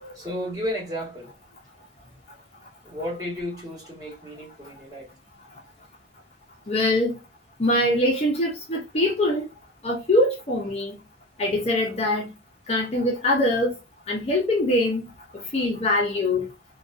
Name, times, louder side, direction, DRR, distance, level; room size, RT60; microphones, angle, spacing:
voice 1, 0.1-1.3 2.8-5.1, equal, 20° right, 1.3 m, -33 dB
voice 2, 6.7-7.1 7.6-9.5 9.8-11.0 11.4-12.3 12.7-13.7 14.1-15.0 15.5-16.5, left 1 dB, 35° left, 0.5 m, -23 dB
2.5 x 2.2 x 2.4 m
head